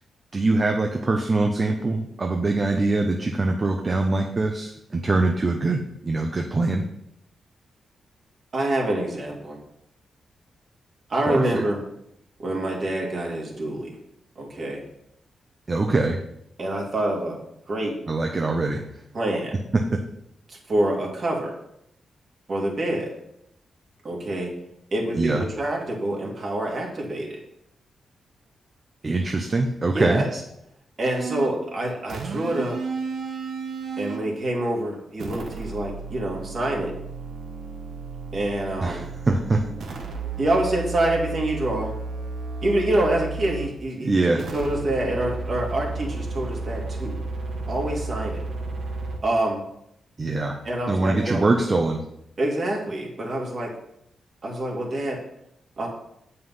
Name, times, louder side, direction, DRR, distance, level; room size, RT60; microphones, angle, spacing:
voice 1, 0.3-6.8 11.3-11.6 15.7-16.2 18.1-18.8 19.7-20.0 25.1-25.4 29.0-30.2 38.8-39.6 44.0-44.4 50.2-50.6 50.9-52.0, right 2 dB, 35° right, 3 dB, 0.8 m, -23 dB
voice 2, 8.5-9.6 11.1-11.8 12.4-14.0 14.4-14.8 16.6-17.4 17.7-18.0 19.1-19.6 20.5-21.6 22.5-23.1 24.0-24.5 24.9-27.4 29.9-30.4 31.0-32.8 34.0-36.9 38.3-39.0 40.4-41.9 42.6-47.2 47.7-48.4 49.2-49.6 50.6-51.4 52.4-53.8 54.4-55.2 55.8-55.9, right 1 dB, 50° right, -1 dB, 2.6 m, -26 dB
sound 1, 31.1-31.6 32.1-34.3 35.2-43.8 44.4-49.2, right 3 dB, 70° right, 1.1 m, -33 dB
7.9 x 5.5 x 5.6 m, 0.77 s
cardioid pair, 85°, 0 cm